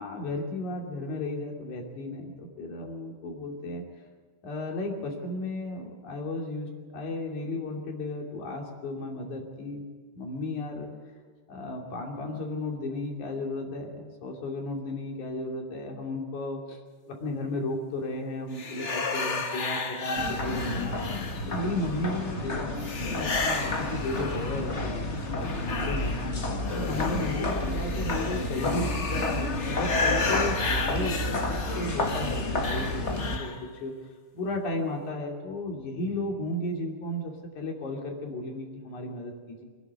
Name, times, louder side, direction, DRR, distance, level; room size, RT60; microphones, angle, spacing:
voice 1, 0.0-3.8 4.4-9.8 10.1-10.9 11.5-16.8 17.1-20.9 21.5-25.1 25.7-33.5 33.8-33.9 34.3-39.7, left 2 dB, 75° left, 1 dB, 4.2 m, -34 dB
sound 1, 18.5-21.7 22.8-24.8 25.2-33.6, left 3 dB, 50° left, 0.8 m, -33 dB
sound 2, 20.2-33.4, left 2 dB, 30° left, 1.4 m, -31 dB
25.0 x 11.0 x 9.6 m, 1.5 s
omnidirectional pair, 3.5 m